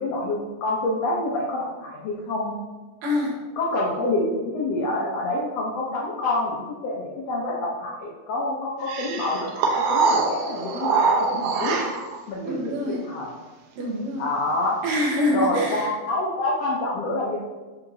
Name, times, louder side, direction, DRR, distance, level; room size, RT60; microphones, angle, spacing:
voice 1, 0.0-2.5 3.6-9.6 9.9-11.8 12.3-12.6 12.9-13.3 14.1-14.8 15.3-17.4, left 2 dB, 80° left, -4 dB, 1.4 m, -27 dB
voice 2, 3.0-3.3 12.5-13.0 13.8-14.3 14.8-15.9, left 1 dB, 70° right, -2 dB, 2.9 m, -25 dB
sound 1, 8.9-12.2, right 4 dB, 90° right, 2.8 m, -23 dB
7.7 x 6.8 x 2.7 m, 1.3 s
omnidirectional pair, 4.2 m